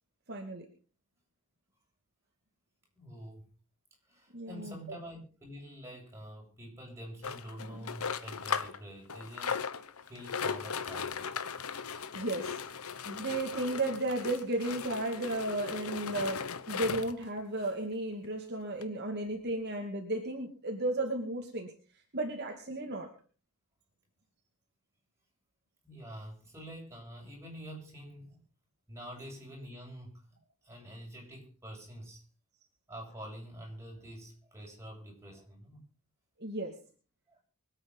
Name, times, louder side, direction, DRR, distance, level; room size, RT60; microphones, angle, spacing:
voice 1, 0.3-0.7 4.3-5.0 7.7-7.9 12.1-12.6 13.0-21.7 22.1-23.1 36.4-36.7, right 2 dB, 50° right, 2 dB, 2.6 m, -34 dB
voice 2, 3.0-3.4 4.1-9.6 10.1-11.2 25.8-28.4 28.9-30.2 30.6-32.2 32.9-35.8 37.3-37.4, equal, 15° right, -1 dB, 7.6 m, -47 dB
sound 1, 7.2-8.8 9.1-17.3 17.9-18.0 18.2-18.3 18.8-18.9, left 6 dB, 75° left, 1.2 m, -37 dB
24.5 x 9.1 x 5.5 m, 0.40 s
head